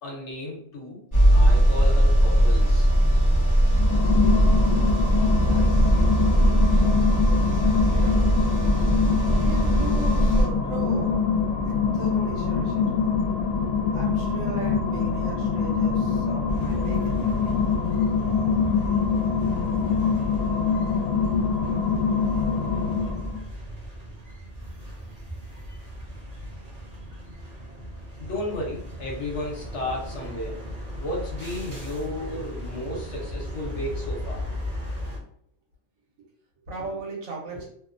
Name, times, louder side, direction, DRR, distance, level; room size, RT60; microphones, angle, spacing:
voice 1, 0.0-1.0 1.3-2.9 28.2-30.6 31.0-34.4, left 1 dB, 60° left, -2 dB, 1.0 m, -33 dB
sound 1, 1.1-10.5, right 1 dB, 20° left, 0.6 m, -20 dB
sound 2, 3.7-23.4, left 5 dB, 85° left, 1.0 m, -24 dB
voice 2, 4.6-5.9 7.4-8.4 9.3-11.3 11.6-12.9 13.9-17.5 17.9-18.1 27.1-27.2 32.2-33.0 36.2-36.3 36.7-37.7, right 4 dB, 80° right, -2 dB, 1.2 m, -38 dB
sound 3, 16.5-35.2, equal, 45° right, 0.6 m, -37 dB
2.8 x 2.1 x 2.5 m, 0.65 s
omnidirectional pair, 1.4 m